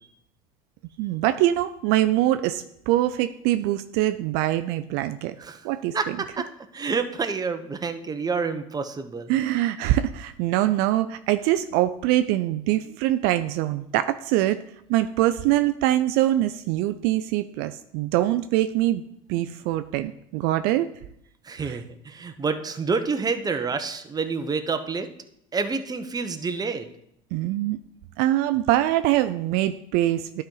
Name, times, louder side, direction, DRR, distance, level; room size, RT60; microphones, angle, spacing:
voice 1, 1.0-5.4 5.6-6.2 9.3-14.6 14.9-19.0 19.3-20.9 21.6-21.8 27.3-27.8 28.2-30.4, right 14 dB, 65° right, 11 dB, 0.4 m, -23 dB
voice 2, 5.9-6.5 6.7-9.3 19.4-19.5 21.4-25.1 25.5-26.9, right 4 dB, 20° right, 8 dB, 0.8 m, -28 dB
11.5 x 4.4 x 3.9 m, 0.76 s
hypercardioid pair, 85°, 18 cm